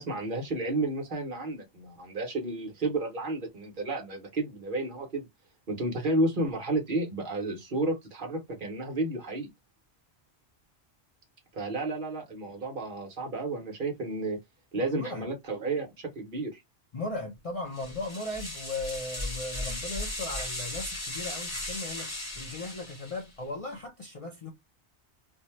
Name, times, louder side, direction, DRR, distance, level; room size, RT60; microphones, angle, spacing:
voice 1, 0.0-5.3 5.7-9.5 11.5-14.4 14.7-16.6, right 2 dB, 50° right, 1.0 m, -32 dB
voice 2, 14.8-15.3 16.9-24.5, left 2 dB, 45° left, 0.5 m, -37 dB
sound 1, 17.7-23.3, left 1 dB, 20° left, 1.0 m, -37 dB
2.6 x 2.2 x 3.0 m
omnidirectional pair, 1.2 m